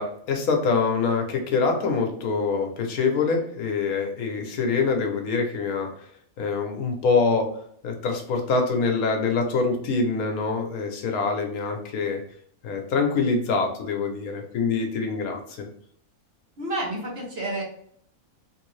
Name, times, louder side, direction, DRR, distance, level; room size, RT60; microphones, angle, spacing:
voice 1, 0.0-6.1 6.4-7.5 7.8-12.2 12.6-15.7, left 4 dB, 75° left, 3 dB, 1.2 m, -25 dB
voice 2, 16.6-17.6, right 1 dB, 50° right, -2 dB, 1.0 m, -29 dB
3.4 x 2.6 x 3.1 m, 0.62 s
omnidirectional pair, 1.5 m